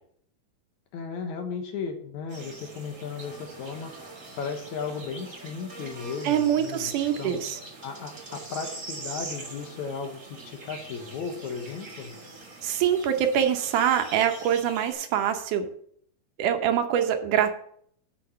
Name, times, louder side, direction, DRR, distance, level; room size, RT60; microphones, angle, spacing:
voice 1, 0.9-3.9 4.4-7.4 7.8-12.1, left 5 dB, 70° left, 5 dB, 2.2 m, -35 dB
sound 1, 2.3-14.9, right 3 dB, 35° right, 1.4 m, -43 dB
voice 2, 6.2-7.6 12.6-15.7 16.4-17.5, right 9 dB, 75° right, 7 dB, 2.2 m, -24 dB
8.5 x 5.2 x 6.6 m, 0.63 s
omnidirectional pair, 3.9 m